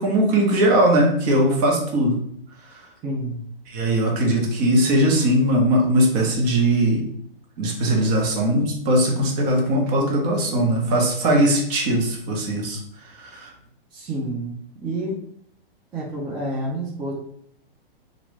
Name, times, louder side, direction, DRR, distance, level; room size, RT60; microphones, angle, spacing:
voice 1, 0.0-2.2 2.7-2.8 3.7-7.0 7.6-13.5, right 1 dB, 40° right, 0 dB, 1.1 m, -20 dB
voice 2, 3.0-3.4 13.9-15.2 15.9-17.1, right 1 dB, 15° right, -5 dB, 0.5 m, -29 dB
2.9 x 2.5 x 3.2 m, 0.66 s
hypercardioid pair, 130°, 30 cm